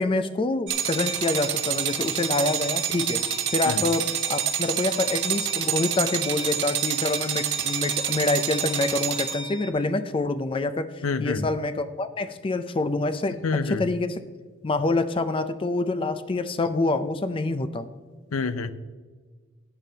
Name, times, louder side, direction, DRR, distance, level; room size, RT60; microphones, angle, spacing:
voice 1, 0.0-3.2 3.5-14.2 14.6-17.9, left 2 dB, 25° left, 11 dB, 0.4 m, -26 dB
sound 1, 0.7-9.7, right 8 dB, 60° right, 0.9 m, -27 dB
voice 2, 11.0-11.4 13.4-13.8 18.3-18.7, left 4 dB, 85° left, 13 dB, 0.6 m, -27 dB
14.5 x 9.1 x 2.8 m, 1.5 s
head